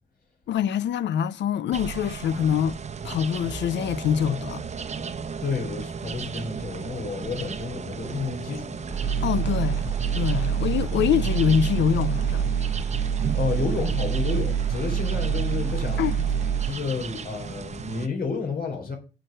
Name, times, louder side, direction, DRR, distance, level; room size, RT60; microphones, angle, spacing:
voice 1, 0.5-2.8 3.0-4.6 9.2-9.8 10.1-12.4 16.0-16.3, left 9 dB, 65° left, 0.6 m, -24 dB
sound 1, 1.7-18.1, right 6 dB, 35° right, 0.9 m, -36 dB
voice 2, 5.4-8.8 13.3-16.1 16.6-19.0, left 5 dB, 45° left, 3.7 m, -30 dB
sound 2, 8.9-16.7, right 7 dB, 5° right, 2.6 m, -26 dB
9.0 x 4.7 x 7.6 m
cardioid pair, 90°, 20 cm